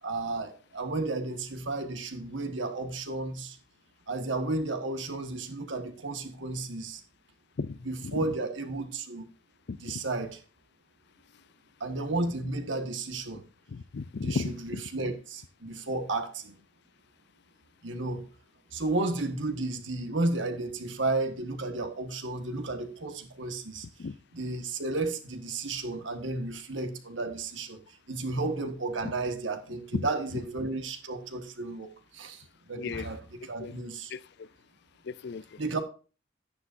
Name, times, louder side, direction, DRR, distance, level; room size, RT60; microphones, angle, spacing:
voice 1, 0.0-3.6 4.1-7.0 7.8-9.3 9.7-10.4 11.8-13.4 14.2-16.6 17.8-18.3 18.7-23.9 24.3-34.1 35.6-35.8, right 2 dB, 75° right, 1.5 m, -33 dB
voice 2, 9.7-10.0 13.7-14.6 24.0-24.2 29.9-30.1 32.8-33.1 33.6-33.7 34.1-34.5 35.0-35.4, left 4 dB, 60° left, 0.4 m, -34 dB
12.0 x 9.7 x 2.6 m
head